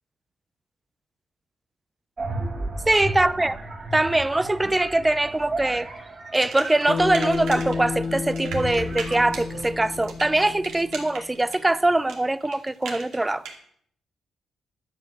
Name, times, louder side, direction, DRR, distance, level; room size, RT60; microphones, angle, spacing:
sound 1, 2.2-11.0, right 2 dB, 35° right, 2.5 m, -35 dB
voice 1, 2.9-3.6 3.9-5.9 6.3-13.4, right 2 dB, 15° right, 0.5 m, -22 dB
sound 2, 6.3-7.8 8.0-13.6, right 5 dB, 85° right, 2.4 m, -38 dB
Bass guitar, 6.9-11.3, left 5 dB, 65° left, 1.1 m, -31 dB
11.0 x 7.9 x 6.7 m
cardioid pair, 115°, 0 cm